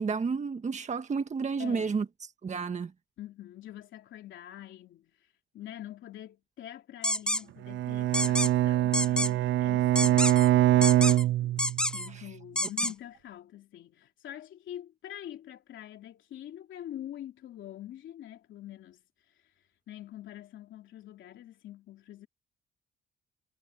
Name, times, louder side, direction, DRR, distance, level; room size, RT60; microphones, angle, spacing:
voice 1, 0.0-2.0 2.4-2.9, right 5 dB, 35° right, 1.6 m, -31 dB
voice 2, 1.6-2.0 3.2-22.3, left 12 dB, 75° left, 3.0 m, -45 dB
sound 1, 7.0-7.4 8.1-8.5 8.9-9.3 10.0-10.5 10.8-11.2 11.6-12.1 12.6-12.9, left 1 dB, 5° left, 1.0 m, -28 dB
Bowed string instrument, 7.6-12.0, right 14 dB, 70° right, 0.4 m, -24 dB
cardioid pair, 90°, 20 cm